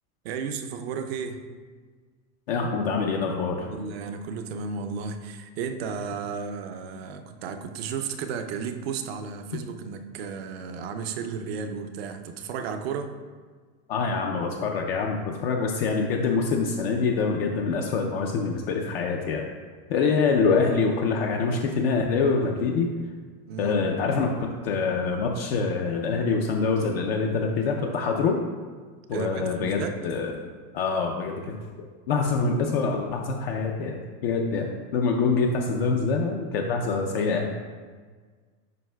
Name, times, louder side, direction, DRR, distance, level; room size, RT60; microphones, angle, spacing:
voice 1, 0.2-1.4 3.6-13.1 23.5-23.8 29.1-30.0, right 6 dB, 45° right, 8 dB, 0.4 m, -33 dB
voice 2, 2.5-3.8 13.9-19.5 19.9-22.9 23.6-28.4 29.1-30.3 30.7-31.6 32.1-37.5, left 4 dB, 45° left, 1 dB, 0.5 m, -25 dB
9.3 x 5.4 x 2.2 m, 1.5 s
supercardioid pair, 165°, 46 cm